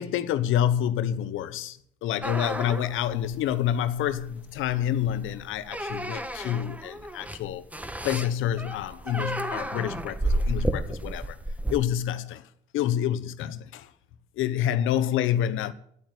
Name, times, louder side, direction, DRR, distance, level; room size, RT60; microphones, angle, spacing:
voice 1, 0.0-7.6 8.0-11.4 11.7-12.4 12.7-13.9 14.4-15.7, left 10 dB, 90° left, 1.0 m, -28 dB
sound 1, 2.2-11.8, right 1 dB, 5° right, 1.3 m, -32 dB
10.0 x 9.1 x 9.6 m
cardioid pair, 90°, 20 cm